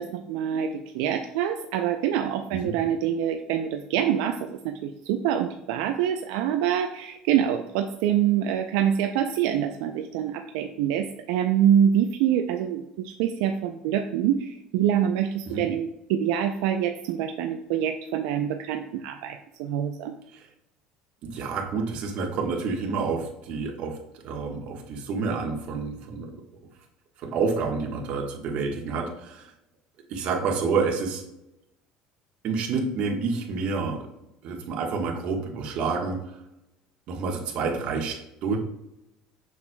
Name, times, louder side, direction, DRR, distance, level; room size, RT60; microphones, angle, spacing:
voice 1, 0.0-20.1, right 9 dB, 85° right, 5 dB, 0.4 m, -25 dB
voice 2, 21.2-24.0 24.2-26.4 27.2-29.5 30.1-31.2 32.4-34.1 34.4-36.3 37.1-38.6, right 4 dB, 55° right, 2 dB, 1.3 m, -29 dB
7.0 x 6.2 x 2.2 m, 0.89 s
cardioid pair, 130°, 2 cm